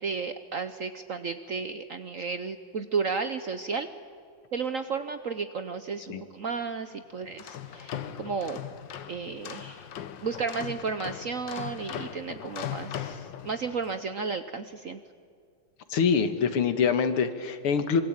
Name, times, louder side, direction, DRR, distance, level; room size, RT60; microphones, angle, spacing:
voice 1, 0.0-3.9 4.5-8.6 9.1-9.9 10.2-15.0, right 5 dB, 55° right, 10 dB, 0.9 m, -33 dB
sound 1, 7.2-13.9, left 9 dB, 65° left, 1.7 m, -39 dB
voice 2, 15.9-18.0, left 6 dB, 85° left, 9 dB, 2.4 m, -25 dB
25.5 x 23.5 x 8.9 m, 2.2 s
omnidirectional pair, 2.3 m